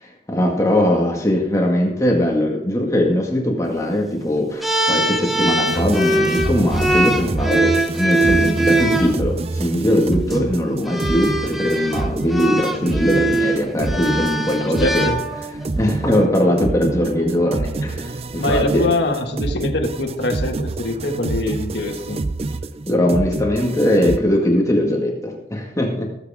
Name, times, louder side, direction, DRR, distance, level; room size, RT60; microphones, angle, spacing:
voice 1, 0.0-15.1 15.8-18.9 22.9-26.1, left 1 dB, 20° left, 0 dB, 1.9 m, -20 dB
sound 1, 4.6-9.1 10.1-10.4 10.9-15.7, right 1 dB, ahead, 1.0 m, -21 dB
sound 2, 5.7-24.2, right 2 dB, 35° right, 0.5 m, -27 dB
voice 2, 14.8-15.2 18.4-22.2, left 2 dB, 75° left, 2 dB, 1.8 m, -23 dB
18.0 x 8.1 x 3.6 m, 0.83 s
head